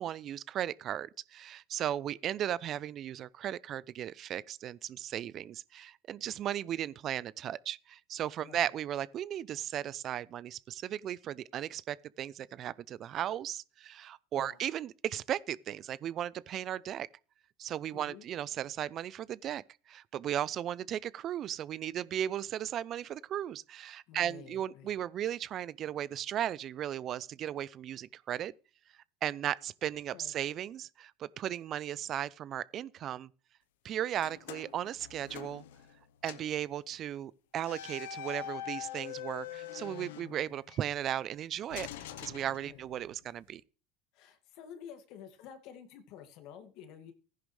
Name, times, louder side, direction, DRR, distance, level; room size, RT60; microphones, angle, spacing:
voice 1, 0.0-17.1 17.6-28.5 29.2-33.3 33.8-35.6 36.2-43.6, right 11 dB, 45° right, 0.5 m, -36 dB
voice 2, 17.9-18.3 24.1-24.9 30.1-30.3 42.7-42.8 44.1-47.1, left 8 dB, 65° left, 2.1 m, -50 dB
sound 1, 34.2-36.0 36.2-36.6 37.6-40.8 41.7-43.1, left 11 dB, 85° left, 0.9 m, -44 dB
15.0 x 10.5 x 3.3 m
supercardioid pair, 100°, 0 cm